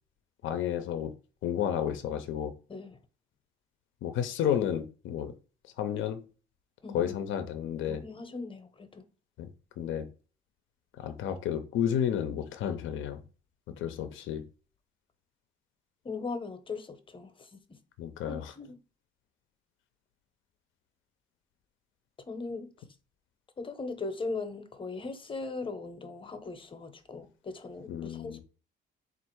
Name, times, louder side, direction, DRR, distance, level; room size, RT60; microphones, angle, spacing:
voice 1, 0.4-1.1 1.4-2.5 4.0-5.3 5.8-6.2 6.9-8.0 9.4-9.5 9.8-10.1 11.0-13.2 13.7-14.5 18.0-18.5 27.9-28.4, left 9 dB, 80° left, 0.5 m, -31 dB
voice 2, 6.8-7.2 7.9-9.0 16.0-17.5 18.3-18.8 22.3-22.7 23.6-28.4, left 3 dB, 25° left, 0.7 m, -39 dB
3.4 x 2.5 x 4.4 m
cardioid pair, 90°, 20 cm